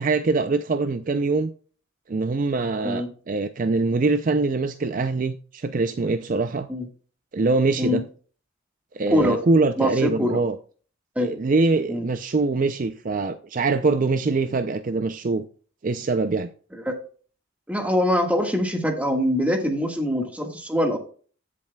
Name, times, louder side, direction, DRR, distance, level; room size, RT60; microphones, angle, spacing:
voice 1, 0.0-1.5 2.1-6.7 7.3-8.0 8.9-10.6 11.2-15.4 15.8-16.5, right 3 dB, 40° right, 0.4 m, -23 dB
voice 2, 9.1-9.4 9.8-10.4 11.1-11.3 11.9-12.0 16.7-17.0 17.7-21.0, left 1 dB, 5° right, 1.5 m, -23 dB
15.0 x 7.5 x 2.3 m
head